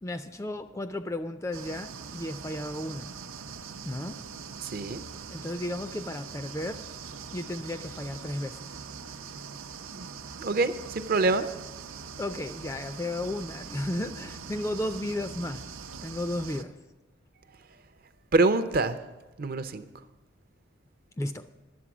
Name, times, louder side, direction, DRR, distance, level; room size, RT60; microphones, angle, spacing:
voice 1, 0.0-3.1 3.8-4.2 5.3-6.8 7.3-8.9 12.2-15.8 16.0-16.8 21.2-21.5, left 1 dB, 15° left, 9 dB, 0.3 m, -34 dB
sound 1, 1.5-16.6, right 5 dB, 90° right, 0.6 m, -42 dB
voice 2, 4.6-5.0 9.9-10.1 10.4-11.4 18.3-19.0 19.4-19.8, right 3 dB, 45° right, 11 dB, 0.5 m, -25 dB
11.0 x 7.8 x 6.0 m, 1.1 s
head